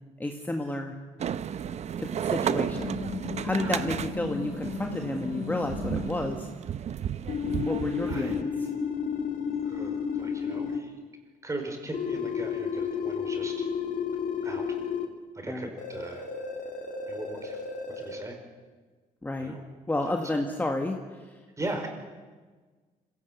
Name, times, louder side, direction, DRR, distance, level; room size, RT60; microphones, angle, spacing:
voice 1, 0.2-1.0 2.0-3.0 3.4-6.5 7.7-8.5 15.5-15.7 19.2-19.5 19.9-21.0, left 2 dB, 10° left, 3 dB, 1.7 m, -31 dB
sound 1, 1.2-8.4, right 8 dB, 50° right, 0.8 m, -33 dB
sound 2, 2.7-6.2 7.3-10.8 11.9-15.1 15.8-18.2, left 6 dB, 65° left, 2.9 m, -32 dB
voice 2, 3.6-3.9 8.1-8.6 9.6-10.9 11.4-13.7 14.4-14.7 15.3-16.3 17.1-17.6 18.0-18.4 19.4-19.6 20.0-20.1 21.6-21.9, right 2 dB, 20° right, 4 dB, 5.0 m, -39 dB
25.5 x 17.0 x 8.3 m, 1.4 s
cardioid pair, 115°, 15 cm